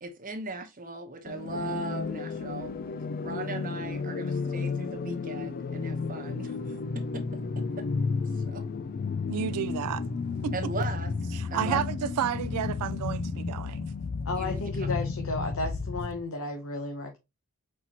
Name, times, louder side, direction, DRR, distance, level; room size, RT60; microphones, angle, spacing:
voice 1, 0.0-2.7 3.2-6.5 6.9-7.2 8.5-8.6 10.5-11.1 11.5-11.8 14.4-15.0, right 2 dB, 40° right, 0.9 m, -38 dB
sound 1, 1.3-16.2, left 4 dB, 40° left, 0.3 m, -32 dB
voice 2, 9.3-10.0 10.4-10.7 11.3-13.9, right 9 dB, 90° right, 0.4 m, -31 dB
voice 3, 14.3-17.2, left 2 dB, 65° left, 0.9 m, -33 dB
4.3 x 4.2 x 2.9 m
head